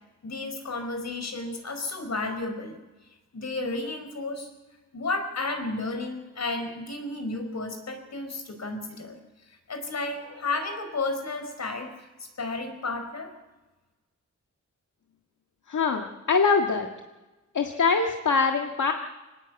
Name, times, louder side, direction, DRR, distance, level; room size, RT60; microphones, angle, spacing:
voice 1, 0.2-2.8 3.3-4.5 4.9-9.2 9.5-11.9 12.2-13.3, left 3 dB, 60° left, 6 dB, 4.6 m, -32 dB
voice 2, 15.7-16.9 17.5-18.9, left 5 dB, 75° left, 3 dB, 1.8 m, -23 dB
25.5 x 19.5 x 8.1 m, 1.1 s
wide cardioid pair, 130°, 30 cm